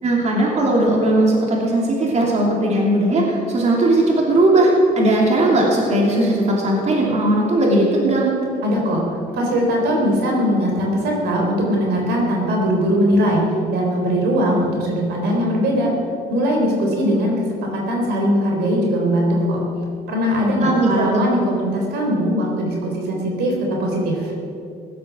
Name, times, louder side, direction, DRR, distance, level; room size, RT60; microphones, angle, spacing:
voice 1, 0.0-8.4 20.6-21.3, right 1 dB, 40° right, -2 dB, 2.9 m, -18 dB
voice 2, 8.6-9.0 9.3-15.9 16.3-17.3 17.7-19.6 20.1-24.3, equal, 75° right, 0 dB, 3.9 m, -20 dB
16.5 x 11.5 x 6.2 m, 2.6 s
cardioid pair, 110°, 17 cm